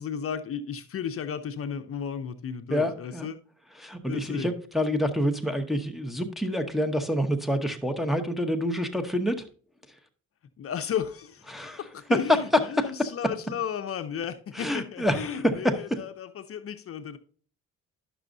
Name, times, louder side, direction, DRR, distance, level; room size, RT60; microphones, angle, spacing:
voice 1, 0.0-3.4 4.1-4.5 10.6-17.2, left 8 dB, 50° left, 0.6 m, -34 dB
voice 2, 2.7-3.3 3.8-9.4 11.5-11.8 14.6-15.8, equal, ahead, 0.8 m, -27 dB
11.0 x 6.1 x 2.6 m
cardioid pair, 90°, 30 cm